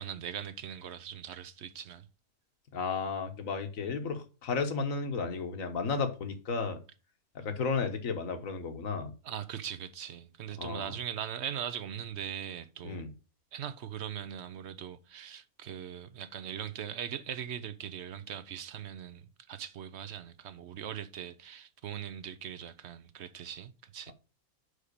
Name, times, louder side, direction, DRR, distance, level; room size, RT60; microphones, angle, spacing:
voice 1, 0.0-2.1 9.2-13.0 13.5-24.1, right 9 dB, 60° right, 0.8 m, -40 dB
voice 2, 2.7-6.8 7.3-9.1 10.6-10.9 12.8-13.1, left 4 dB, 65° left, 1.5 m, -33 dB
5.6 x 5.0 x 6.5 m
omnidirectional pair, 1.5 m